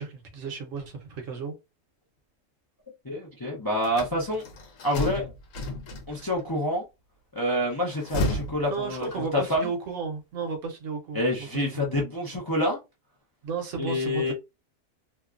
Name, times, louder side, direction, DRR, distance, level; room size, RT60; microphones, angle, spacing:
voice 1, 0.0-1.5 8.7-11.2 11.5-11.8 13.4-14.3, right 5 dB, 70° right, 1.2 m, -33 dB
voice 2, 3.0-4.5 4.8-5.3 6.1-6.8 7.3-9.7 11.1-12.8 13.8-14.3, left 1 dB, 25° left, 0.5 m, -27 dB
sound 1, 3.8-6.4 7.7-9.5, left 1 dB, 75° left, 1.1 m, -33 dB
2.8 x 2.2 x 2.4 m
omnidirectional pair, 1.4 m